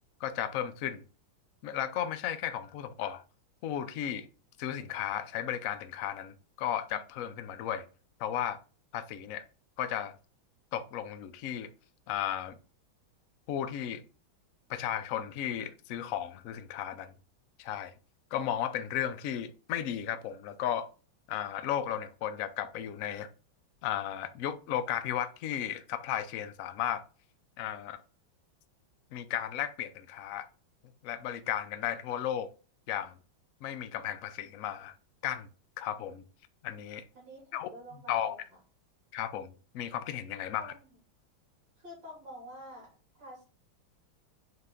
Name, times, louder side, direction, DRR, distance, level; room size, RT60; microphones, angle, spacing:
voice 1, 0.2-1.0 1.6-3.2 3.6-4.3 4.6-7.8 8.2-8.6 8.9-9.4 9.8-10.2 10.7-11.7 12.1-12.5 13.5-14.0 14.7-17.1 17.6-17.9 18.3-20.9 21.3-23.3 23.8-27.0 27.6-28.0 29.1-30.5 31.0-32.5 32.9-33.1 33.6-35.0 35.2-35.5 35.8-36.2 36.6-37.0 37.5-37.7 38.1-38.4 39.1-40.7, left 10 dB, 80° left, 0.7 m, -34 dB
voice 2, 37.1-38.6 40.6-41.0 41.8-43.4, equal, 65° right, 3.6 m, -48 dB
7.8 x 3.9 x 3.8 m
omnidirectional pair, 2.3 m